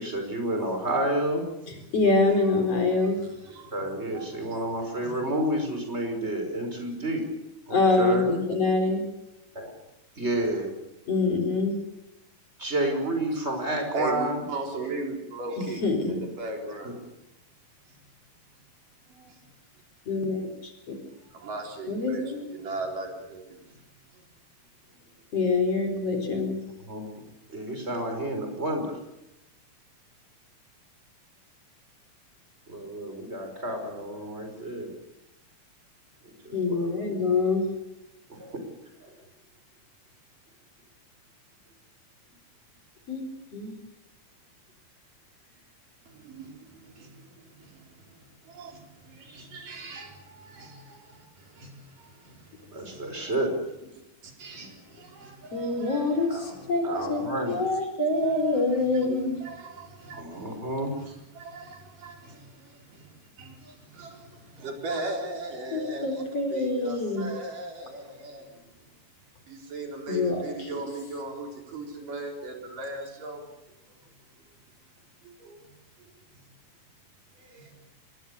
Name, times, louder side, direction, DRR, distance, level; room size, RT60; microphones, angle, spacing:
voice 1, 0.0-1.4 3.7-7.2 7.7-8.3 9.6-9.7 10.2-10.7 12.6-14.4 16.8-16.9 26.9-27.1 27.5-29.0 32.7-34.9 36.5-36.9 38.3-38.6 52.7-53.5 56.3-56.5 56.8-57.6 60.1-60.9, right 1 dB, 20° right, 4 dB, 5.6 m, -30 dB
voice 2, 1.9-3.2 7.7-9.0 11.1-11.8 15.6-16.2 20.1-21.0 21.9-22.4 25.3-26.6 36.5-37.7 43.1-43.3 43.5-43.8 55.5-59.4 65.7-67.3 70.1-70.4, left 3 dB, 50° left, 5 dB, 5.1 m, -25 dB
voice 3, 2.8-5.2 13.9-17.0 17.9-18.0 19.1-19.5 20.9-23.7 46.1-53.3 54.2-56.7 57.2-57.6 58.3-60.6 61.0-68.5 69.5-73.5 75.2-75.7 77.4-77.8, right 2 dB, 80° right, 2 dB, 5.9 m, -39 dB
26.5 x 21.0 x 6.9 m, 0.91 s
omnidirectional pair, 3.7 m